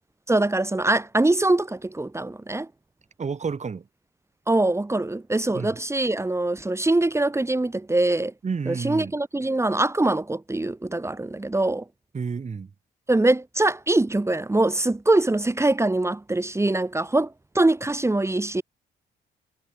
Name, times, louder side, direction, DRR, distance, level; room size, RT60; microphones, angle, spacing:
voice 1, 0.3-2.7 4.5-8.3 8.7-11.8 13.1-18.6, right 2 dB, 15° right, 2.4 m, -23 dB
voice 2, 3.2-3.9 5.5-5.8 8.4-9.1 12.1-12.7, right 5 dB, 35° right, 4.0 m, -30 dB
cardioid pair, 90°, 20 cm